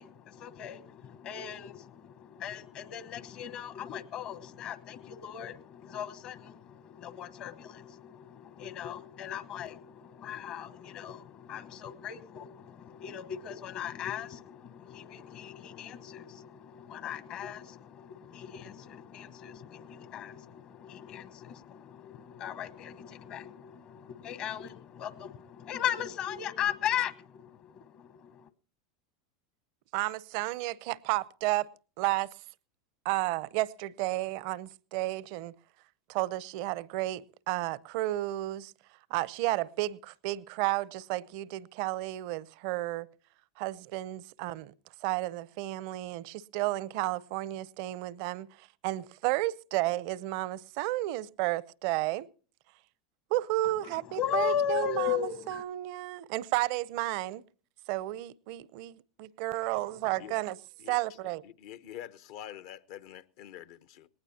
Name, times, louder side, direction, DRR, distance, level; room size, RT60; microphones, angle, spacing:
voice 1, 0.0-28.5 53.6-55.6, left 9 dB, 50° left, 1.1 m, -37 dB
voice 2, 29.9-31.7 32.0-32.4 33.0-35.5 36.1-43.1 43.6-44.7 45.0-52.3 53.3-57.4 57.9-60.6 60.9-61.4, right 17 dB, 60° right, 0.6 m, -32 dB
voice 3, 61.4-64.1, left 11 dB, 65° left, 0.8 m, -46 dB
19.5 x 18.5 x 2.8 m
hypercardioid pair, 95°, 2 cm